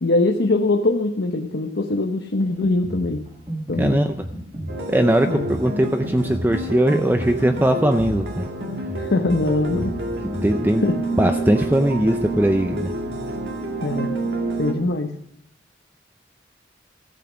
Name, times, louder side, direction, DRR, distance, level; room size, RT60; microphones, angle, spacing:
voice 1, 0.0-3.2 3.7-4.1 5.2-5.5 9.0-9.9 10.8-11.0 13.8-14.1 14.6-15.1, left 2 dB, 80° left, 4 dB, 0.9 m, -22 dB
Drum kit, 2.4-10.7, equal, 30° right, 1.9 m, -34 dB
voice 2, 3.8-4.2 4.9-8.5 10.4-10.9 11.2-12.9, right 1 dB, 10° right, 7 dB, 0.5 m, -20 dB
sound 1, 4.7-14.7, right 2 dB, 65° right, 2.1 m, -28 dB
14.5 x 8.2 x 5.0 m, 0.78 s
head